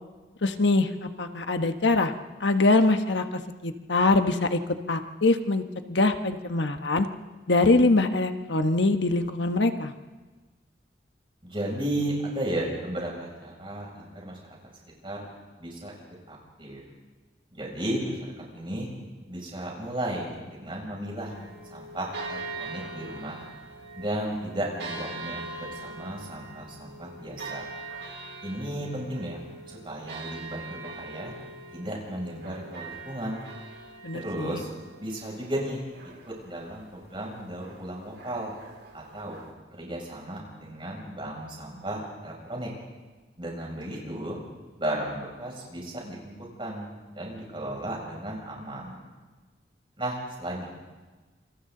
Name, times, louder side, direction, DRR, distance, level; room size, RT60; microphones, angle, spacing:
voice 1, 0.4-2.1 2.4-4.6 4.9-7.1 7.5-9.9 34.0-34.6, left 2 dB, 85° left, 7 dB, 1.3 m, -23 dB
voice 2, 11.4-14.4 15.0-15.3 15.6-15.9 16.3-16.8 17.5-18.2 18.5-18.9 19.3-21.3 21.7-23.4 24.0-27.7 28.4-29.4 29.7-31.3 31.7-33.4 34.1-34.7 35.0-35.8 36.3-38.5 38.9-39.4 39.7-42.7 43.4-44.4 44.8-46.9 47.1-49.0 50.0-50.7, right 1 dB, 30° right, -2 dB, 6.9 m, -34 dB
sound 1, 21.2-39.5, right 3 dB, 85° right, 4.4 m, -42 dB
28.0 x 26.5 x 4.0 m, 1.3 s
head